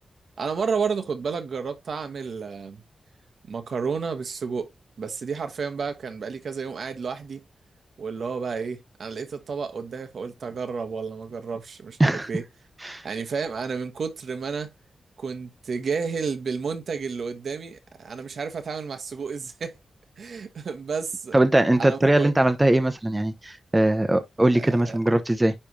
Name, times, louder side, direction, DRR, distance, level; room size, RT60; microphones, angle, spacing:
voice 1, 0.4-2.8 3.5-4.7 5.0-7.4 8.0-12.4 13.0-14.7 15.2-19.8 20.2-21.4 21.8-22.3 24.5-25.2, right 5 dB, 65° right, 1.3 m, -31 dB
voice 2, 21.3-25.5, right 1 dB, 15° right, 0.9 m, -21 dB
10.0 x 3.4 x 3.0 m
wide cardioid pair, 125°, 0 cm